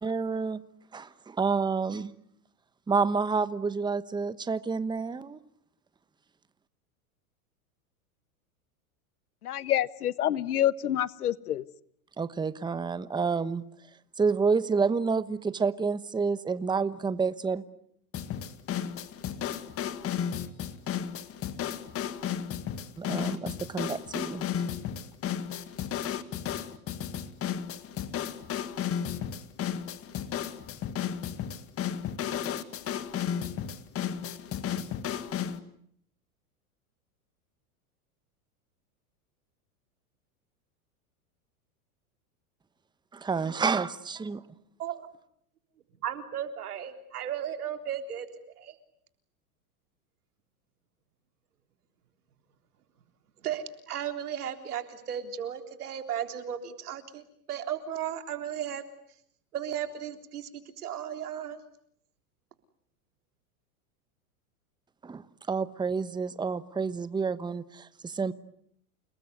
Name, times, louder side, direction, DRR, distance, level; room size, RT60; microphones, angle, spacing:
voice 1, 0.0-0.6 0.9-2.1 2.9-5.4 12.2-13.6 14.2-17.6 23.0-24.4 43.1-44.4 65.0-68.3, right 5 dB, 10° right, 1.1 m, -29 dB
voice 2, 9.4-11.6, left 11 dB, 85° left, 1.3 m, -27 dB
sound 1, 18.1-35.6, left 9 dB, 30° left, 2.0 m, -33 dB
voice 3, 46.0-48.3 48.6-48.7 53.4-58.8 59.5-60.5 60.8-61.6, right 9 dB, 85° right, 3.7 m, -35 dB
29.5 x 20.0 x 9.7 m
hypercardioid pair, 110°, 44 cm